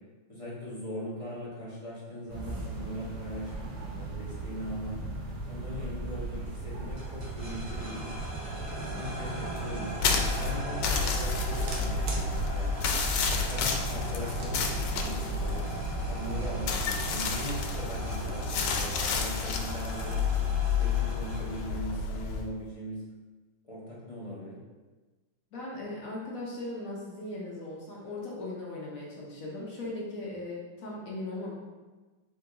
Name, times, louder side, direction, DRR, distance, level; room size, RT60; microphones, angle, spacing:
voice 1, 0.3-5.0 5.5-8.2 8.7-13.0 13.5-15.7 16.1-20.2 20.8-23.0 23.6-24.6, equal, 25° left, -8 dB, 0.8 m, -40 dB
sound 1, 2.3-18.9, right 3 dB, 65° right, 1.0 m, -37 dB
sound 2, 7.0-21.8, right 1 dB, 30° right, 1.2 m, -41 dB
sound 3, 10.0-22.4, left 5 dB, 90° left, 1.5 m, -30 dB
voice 2, 25.5-31.5, left 2 dB, 60° left, -4 dB, 0.9 m, -38 dB
3.9 x 3.5 x 3.8 m, 1.3 s
omnidirectional pair, 2.3 m